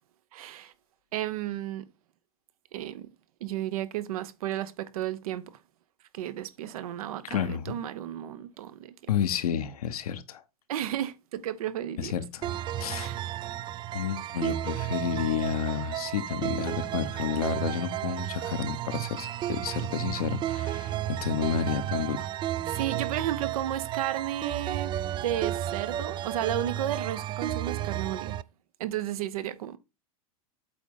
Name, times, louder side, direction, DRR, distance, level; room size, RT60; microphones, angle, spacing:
voice 1, 0.3-0.7 1.1-1.9 2.7-3.1 3.4-5.6 6.1-9.0 10.7-12.1 12.9-13.2 22.7-25.0 25.2-28.4 28.8-29.8, right 12 dB, 75° right, 1.0 m, -33 dB
voice 2, 7.2-7.7 9.1-10.4 12.0-12.2 12.8-13.1 13.9-22.3, left 8 dB, 85° left, 1.1 m, -30 dB
sound 1, 12.4-28.4, right 12 dB, 25° right, 0.3 m, -33 dB
8.3 x 3.6 x 5.5 m
hypercardioid pair, 120°, 19 cm